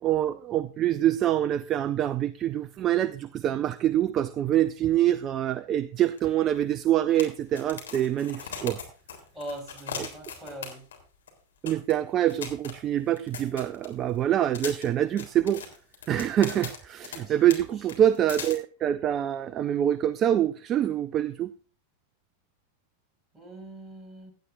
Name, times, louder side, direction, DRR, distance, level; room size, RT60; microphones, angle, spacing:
voice 1, 0.0-8.8 10.0-10.1 11.6-15.6 16.1-21.5, right 11 dB, 30° right, 14 dB, 0.5 m, -25 dB
sound 1, 6.2-6.3 6.5-6.6 7.2-11.0 11.3-11.4 11.7-11.9 12.3-14.1 14.5-17.2 17.5-17.6 17.9-18.5, left 6 dB, 65° left, 3.5 m, -39 dB
voice 2, 9.3-10.8 17.3-17.4 23.3-24.3, right 1 dB, 10° right, 1 dB, 5.4 m, -41 dB
17.0 x 11.5 x 2.6 m, 0.38 s
figure-of-eight pair, 90°, 0 cm